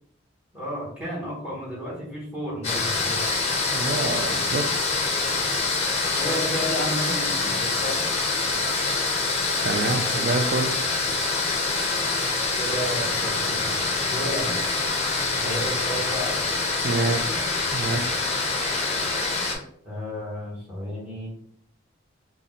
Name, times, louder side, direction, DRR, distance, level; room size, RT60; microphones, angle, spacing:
voice 1, 0.5-3.3 6.2-8.0 12.5-13.7 14.0-14.6 15.4-16.3 17.0-17.4 19.8-21.3, equal, 5° right, -6 dB, 1.3 m, -32 dB
sound 1, 2.6-19.5, left 3 dB, 30° left, 0.5 m, -25 dB
voice 2, 3.7-4.7 9.6-10.7 16.8-17.2 17.7-18.1, right 3 dB, 45° right, 7 dB, 0.3 m, -26 dB
2.6 x 2.1 x 3.6 m, 0.65 s
head